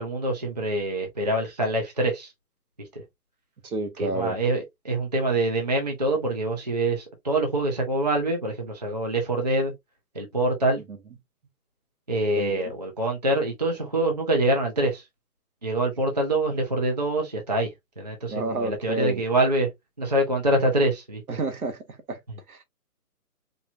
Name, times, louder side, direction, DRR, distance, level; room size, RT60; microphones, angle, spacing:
voice 1, 0.0-2.3 2.8-2.9 4.0-9.7 10.1-10.8 12.1-15.0 15.6-19.7 20.0-21.2, right 1 dB, 25° right, 0.6 m, -25 dB
voice 2, 3.6-4.4 10.9-11.0 12.4-12.7 18.3-19.2 21.3-22.2 22.5-22.6, right 3 dB, 65° right, 1.3 m, -30 dB
4.4 x 2.5 x 2.7 m
hypercardioid pair, 165°, 47 cm